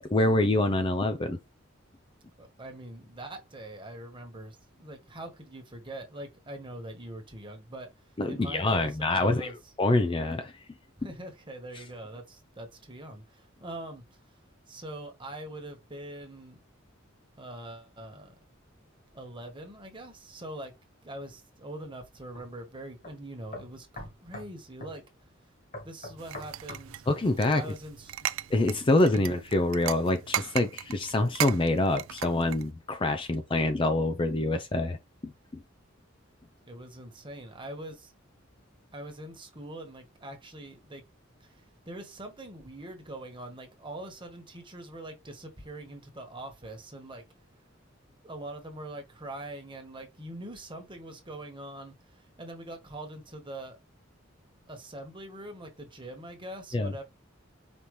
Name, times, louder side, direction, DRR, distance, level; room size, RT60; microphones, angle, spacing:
voice 1, 0.1-1.4 8.2-9.5 9.8-10.5 27.1-27.6 28.5-35.0 35.2-35.3 56.7-56.9, left 2 dB, 25° left, 0.4 m, -25 dB
voice 2, 2.4-7.9 8.3-9.6 11.0-14.2 14.7-16.6 17.4-18.3 19.1-20.7 21.0-25.3 25.8-27.0 27.5-28.2 29.0-29.2 36.7-38.1 38.9-41.0 41.4-47.2 48.2-53.8 54.7-57.0, right 1 dB, 25° right, 1.3 m, -43 dB
sound 1, 22.3-22.5 23.0-23.1 23.5-24.5 24.8-25.0 25.7-26.9 27.4-27.6, left 1 dB, 40° left, 1.6 m, -42 dB
sound 2, 26.2-32.7, right 12 dB, 80° right, 0.3 m, -37 dB
5.3 x 2.8 x 3.1 m
head